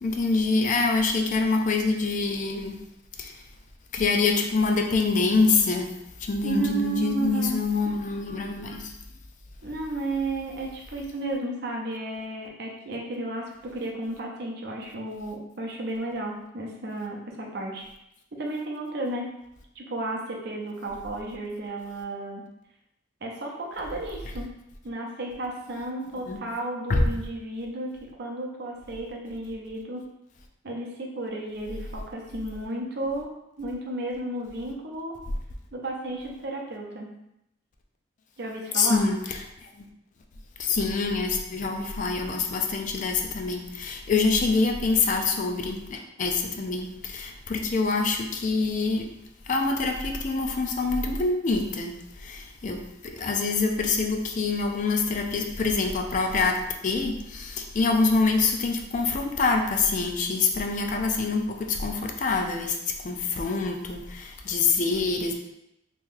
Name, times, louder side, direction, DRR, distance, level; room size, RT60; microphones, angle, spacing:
voice 1, 0.0-2.8 3.2-3.4 3.9-5.9 6.2-8.9 26.3-26.4 26.9-27.0 38.7-39.9 40.6-49.0 49.5-52.8 53.1-56.6 56.8-65.3, left 4 dB, 40° left, 3 dB, 0.4 m, -25 dB
voice 2, 6.4-7.6 9.6-17.9 18.3-19.3 19.8-22.4 23.2-24.5 24.8-30.1 30.6-33.3 33.6-35.2 35.7-37.1 38.4-39.1, right 2 dB, 55° right, 0 dB, 0.6 m, -33 dB
2.9 x 2.6 x 3.7 m, 0.82 s
head